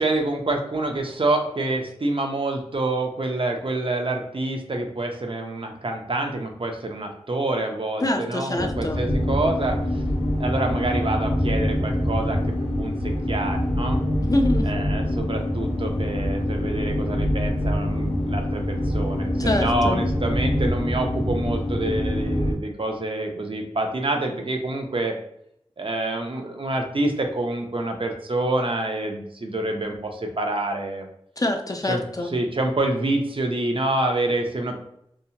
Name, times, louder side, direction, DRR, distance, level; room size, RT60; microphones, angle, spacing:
voice 1, 0.0-9.8 10.4-12.9 13.3-14.0 14.7-25.2 25.8-31.1 31.9-32.0 32.3-34.7, right 2 dB, 55° right, 3 dB, 0.5 m, -27 dB
voice 2, 8.0-9.0 14.2-14.7 19.4-20.0 31.4-32.4, left 1 dB, 35° left, 4 dB, 0.4 m, -25 dB
sound 1, 8.5-22.5, left 1 dB, 85° left, 0.6 m, -25 dB
2.7 x 2.1 x 2.7 m, 0.72 s
wide cardioid pair, 55°, 11 cm